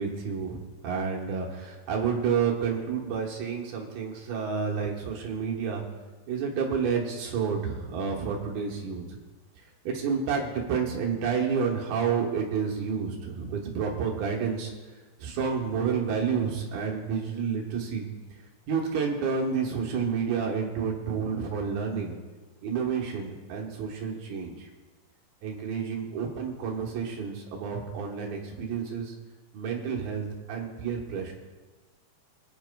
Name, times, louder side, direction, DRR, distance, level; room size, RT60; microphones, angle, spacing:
voice 1, 0.0-5.9 6.3-9.2 9.8-14.7 15.2-18.1 18.7-22.2 22.6-24.7 25.4-29.1 29.5-31.3, right 6 dB, 65° right, -1 dB, 2.7 m, -30 dB
23.5 x 10.0 x 2.2 m, 1.3 s
omnidirectional pair, 5.3 m